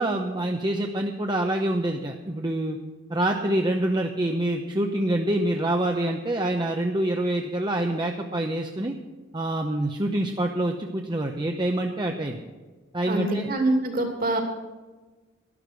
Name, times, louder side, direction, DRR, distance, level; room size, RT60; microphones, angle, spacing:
voice 1, 0.0-2.8 3.1-8.9 9.3-12.4 12.9-13.5, right 1 dB, 25° right, 3 dB, 0.8 m, -26 dB
voice 2, 13.1-14.4, right 2 dB, 50° right, 3 dB, 2.6 m, -25 dB
12.0 x 11.5 x 6.3 m, 1.3 s
head